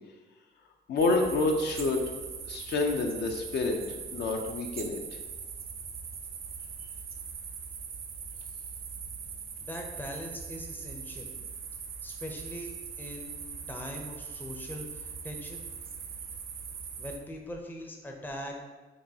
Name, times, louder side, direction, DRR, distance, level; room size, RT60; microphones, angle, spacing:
voice 1, 0.9-2.0 2.5-3.8 4.1-5.0, left 3 dB, 60° left, 3 dB, 0.5 m, -28 dB
sound 1, 1.0-17.2, right 6 dB, 50° right, 0.5 m, -41 dB
voice 2, 9.6-11.3 12.0-15.6 17.0-18.7, left 1 dB, 10° left, 1 dB, 0.5 m, -41 dB
5.4 x 2.3 x 2.7 m, 1.2 s
cardioid pair, 90°, 20 cm